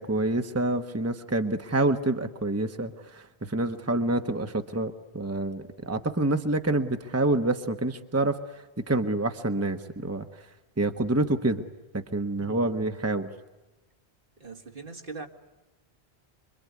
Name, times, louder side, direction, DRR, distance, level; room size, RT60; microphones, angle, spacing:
voice 1, 0.0-10.4 10.8-11.6 11.9-13.3, right 2 dB, 15° right, 7 dB, 1.2 m, -27 dB
voice 2, 12.4-12.8 14.4-15.3, right 4 dB, 55° right, 5 dB, 2.3 m, -41 dB
26.5 x 23.0 x 9.5 m, 1.1 s
omnidirectional pair, 1.1 m